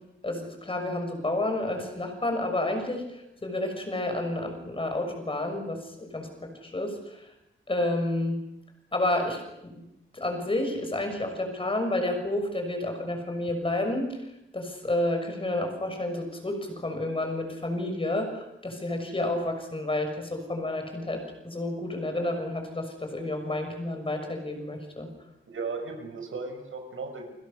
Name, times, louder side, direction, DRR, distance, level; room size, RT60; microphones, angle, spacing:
voice 1, 0.2-3.1 3.4-7.2 7.7-8.4 8.9-9.7 10.1-14.2 14.5-25.1, left 1 dB, 25° left, 5 dB, 6.5 m, -30 dB
voice 2, 25.5-27.3, right 4 dB, 80° right, 4 dB, 6.9 m, -36 dB
30.0 x 25.5 x 6.7 m, 0.88 s
wide cardioid pair, 165°, 21 cm